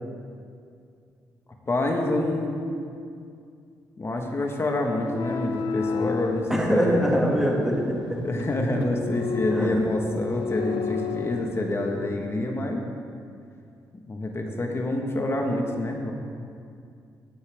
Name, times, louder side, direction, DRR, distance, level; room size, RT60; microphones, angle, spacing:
voice 1, 1.7-2.6 4.0-7.0 8.2-12.8 14.1-16.1, left 1 dB, 35° left, 2 dB, 1.6 m, -27 dB
sound 1, 5.0-12.0, left 6 dB, 65° left, 0.7 m, -32 dB
voice 2, 6.5-8.3 9.5-9.8, equal, 5° right, -2 dB, 2.4 m, -23 dB
13.5 x 8.8 x 3.7 m, 2.4 s
supercardioid pair, 60°, 8 cm